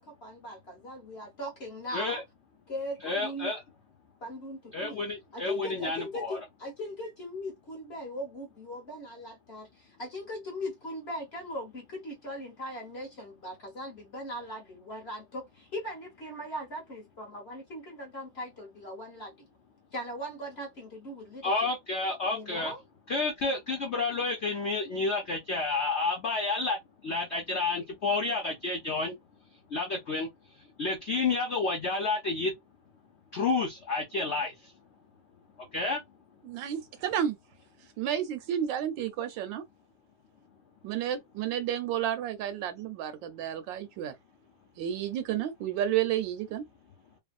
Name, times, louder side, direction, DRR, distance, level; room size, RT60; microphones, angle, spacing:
voice 1, 0.0-2.2 2.7-3.5 4.2-5.0 5.3-19.5 19.9-21.5 22.3-22.8, equal, 40° left, 1.0 m, -39 dB
voice 2, 3.0-3.6 4.7-6.4 21.4-22.7 23.1-26.8 27.0-29.1 29.7-30.3 30.8-32.5 33.3-34.5 35.7-36.0, left 3 dB, 85° left, 0.6 m, -30 dB
voice 3, 36.4-37.4 38.0-39.6 40.8-44.1 44.8-46.7, right 10 dB, 75° right, 1.3 m, -31 dB
3.1 x 2.1 x 2.4 m
omnidirectional pair, 2.1 m